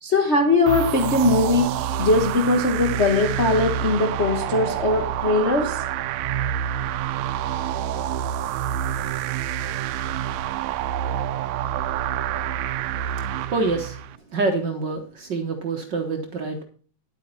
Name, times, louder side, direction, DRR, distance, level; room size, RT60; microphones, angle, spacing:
voice 1, 0.0-5.8, left 2 dB, 65° left, 0.6 m, -20 dB
sound 1, 0.7-14.2, right 10 dB, 80° right, 1.7 m, -27 dB
voice 2, 13.5-14.0 14.3-16.6, right 3 dB, 55° right, 1.3 m, -26 dB
11.0 x 8.3 x 4.1 m
omnidirectional pair, 3.3 m